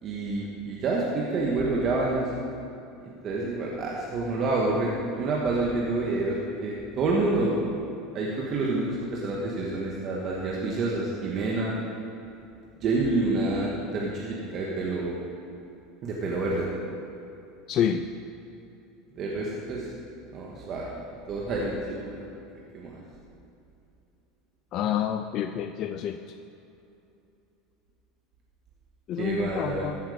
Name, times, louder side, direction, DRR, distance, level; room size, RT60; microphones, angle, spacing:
voice 1, 0.0-2.3 3.0-7.5 8.1-11.7 12.8-15.1 16.0-16.7 19.2-19.9 20.3-20.9 21.3-22.2 22.7-23.0 29.2-29.9, right 3 dB, 45° right, -3 dB, 1.6 m, -28 dB
voice 2, 17.7-18.1 24.7-26.2 29.1-30.0, left 9 dB, 50° left, 7 dB, 0.4 m, -28 dB
14.5 x 5.7 x 5.1 m, 2.8 s
supercardioid pair, 105°, 0 cm